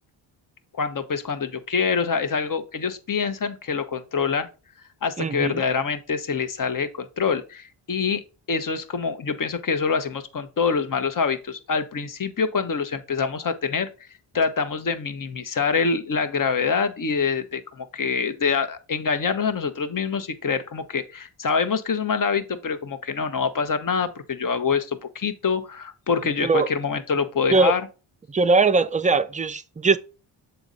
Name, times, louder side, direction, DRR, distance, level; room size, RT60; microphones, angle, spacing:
voice 1, 0.7-4.5 5.0-8.2 8.5-13.9 14.3-27.8, left 5 dB, 40° left, 1.0 m, -25 dB
voice 2, 5.2-5.6 26.4-26.7 27.5-27.7 28.3-30.0, right 4 dB, 15° right, 0.5 m, -20 dB
6.9 x 4.2 x 3.9 m
cardioid pair, 60°, 48 cm